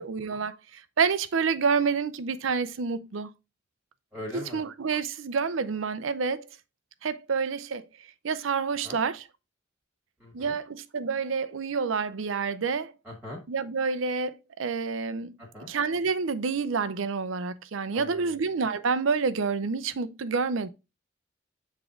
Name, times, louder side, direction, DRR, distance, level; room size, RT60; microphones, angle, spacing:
voice 1, 0.0-3.3 4.3-6.5 7.0-7.9 8.2-9.3 10.3-12.9 13.5-15.4 15.7-20.7, right 5 dB, 75° right, 0.5 m, -28 dB
voice 2, 4.1-4.6 8.8-9.0 10.2-10.5 13.0-13.4 15.4-15.7 17.9-18.3, left 1 dB, 10° right, 1.4 m, -41 dB
7.1 x 3.6 x 3.7 m
head